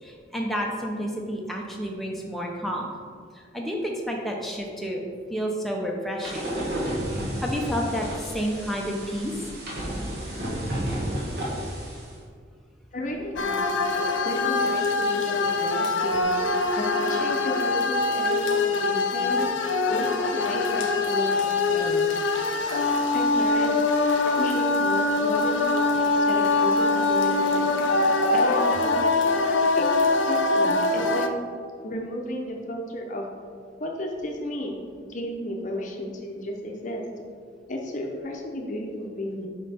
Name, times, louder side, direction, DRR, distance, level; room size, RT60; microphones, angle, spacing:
voice 1, 0.0-2.9 3.3-5.0 5.3-6.5 7.4-9.3, equal, ahead, -1 dB, 0.6 m, -30 dB
sound 1, 6.2-12.1, equal, 55° right, 1.5 m, -31 dB
voice 2, 12.9-13.7 14.2-16.3 16.8-19.5 19.9-22.2 23.1-23.7 24.2-27.6 28.3-31.3 31.8-33.2 33.8-34.7 35.1-37.0 37.7-39.5, left 1 dB, 40° left, 1 dB, 0.7 m, -33 dB
sound 2, 13.4-31.3, left 3 dB, 80° left, 0.5 m, -23 dB
5.5 x 5.2 x 4.2 m, 2.1 s
head